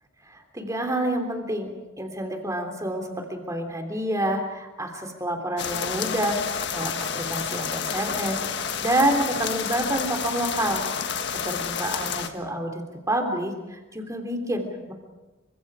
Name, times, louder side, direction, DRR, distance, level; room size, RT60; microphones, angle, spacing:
voice 1, 0.3-1.7 2.0-6.4 6.7-10.8 11.4-14.9, right 1 dB, 15° right, 4 dB, 3.5 m, -28 dB
sound 1, 5.6-12.3, left 6 dB, 60° left, 1.6 m, -30 dB
29.5 x 25.5 x 5.0 m, 1.1 s
head